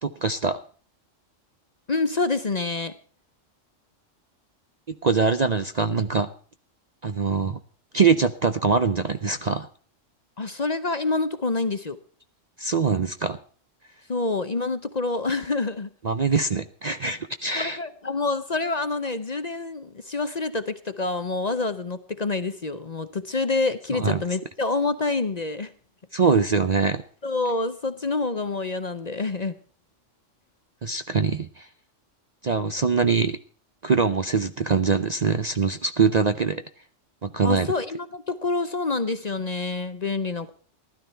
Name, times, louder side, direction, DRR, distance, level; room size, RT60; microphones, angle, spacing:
voice 1, 0.0-0.6 4.9-6.3 7.0-7.6 7.9-9.7 12.6-13.4 16.0-17.8 23.9-24.2 26.1-27.0 30.8-31.7 32.4-33.4 33.8-36.6 37.2-37.7, right 5 dB, 45° right, 10 dB, 0.6 m, -23 dB
voice 2, 1.9-2.9 10.4-12.0 14.1-15.9 17.5-25.7 27.2-29.5 37.4-40.5, left 3 dB, 40° left, 11 dB, 0.8 m, -27 dB
16.0 x 12.0 x 4.4 m, 0.42 s
omnidirectional pair, 1.3 m